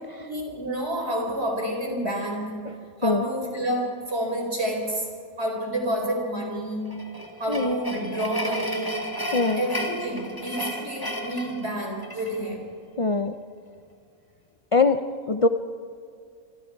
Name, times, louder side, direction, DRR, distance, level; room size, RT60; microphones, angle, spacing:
voice 1, 0.2-2.7 3.0-5.1 5.4-7.0 7.4-9.1 9.6-12.7, right 1 dB, 45° right, 1 dB, 4.5 m, -29 dB
sound 1, 6.9-12.4, equal, 15° left, 2.0 m, -33 dB
voice 2, 9.3-9.6 13.0-13.3 14.7-15.0 15.3-15.5, left 3 dB, 40° left, 8 dB, 0.5 m, -22 dB
26.0 x 25.5 x 4.7 m, 2.4 s
omnidirectional pair, 1.5 m